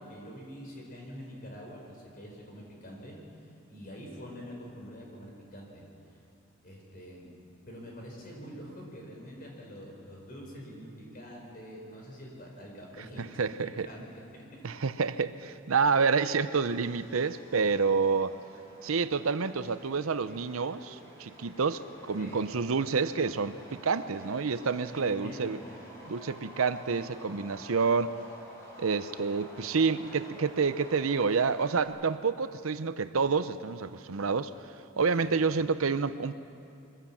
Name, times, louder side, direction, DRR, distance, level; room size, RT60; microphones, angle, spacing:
voice 1, 0.0-3.2 3.7-6.2 6.6-7.3 7.7-13.5 13.9-14.4 22.2-22.4 25.0-25.7 35.2-35.3, equal, 45° left, -1 dB, 4.6 m, -45 dB
voice 2, 13.2-13.9 14.6-18.3 18.8-21.8 22.1-25.6 26.1-28.2 28.8-34.5 35.0-36.3, right 5 dB, 90° right, 13 dB, 0.7 m, -28 dB
Subway metro underground, 15.7-31.9, equal, 15° left, 4.8 m, -51 dB
23.5 x 15.5 x 7.3 m, 2.6 s
head